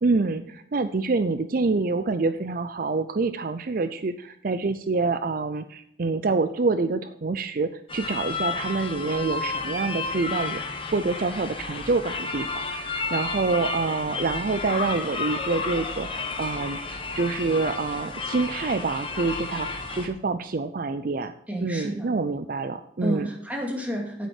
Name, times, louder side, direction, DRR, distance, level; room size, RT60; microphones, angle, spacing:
voice 1, 0.0-21.3 21.6-23.3, right 3 dB, 50° right, 11 dB, 0.5 m, -27 dB
sound 1, 7.9-20.1, left 4 dB, 30° left, 1.5 m, -32 dB
voice 2, 21.5-22.1 23.0-24.3, right 1 dB, 10° right, 0 dB, 2.3 m, -30 dB
9.3 x 8.6 x 4.8 m, 0.75 s
head